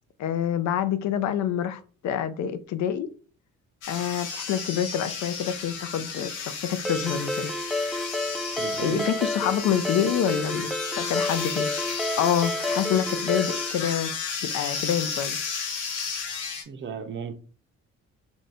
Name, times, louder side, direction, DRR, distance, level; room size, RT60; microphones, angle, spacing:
voice 1, 0.2-3.1 3.9-7.5 8.8-14.1 14.5-15.4, left 9 dB, 70° left, 0.5 m, -27 dB
sound 1, 3.8-16.6, left 6 dB, 85° left, 0.8 m, -33 dB
Ringtone, 6.8-13.7, left 1 dB, ahead, 0.3 m, -30 dB
voice 2, 8.5-9.1 16.7-17.3, right 6 dB, 40° right, 0.6 m, -34 dB
2.6 x 2.6 x 3.3 m
cardioid pair, 90°, 30 cm